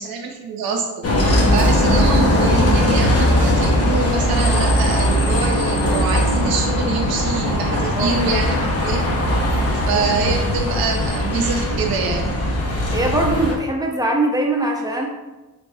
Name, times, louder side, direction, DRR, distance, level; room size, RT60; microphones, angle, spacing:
voice 1, 0.0-9.1 9.7-12.4, right 4 dB, 70° right, 2 dB, 0.6 m, -25 dB
Bus, 1.0-13.5, left 1 dB, 40° left, 0.8 m, -19 dB
voice 2, 12.9-15.1, right 1 dB, 10° right, -1 dB, 0.7 m, -21 dB
3.2 x 3.2 x 2.6 m, 1.1 s
cardioid pair, 60°, 38 cm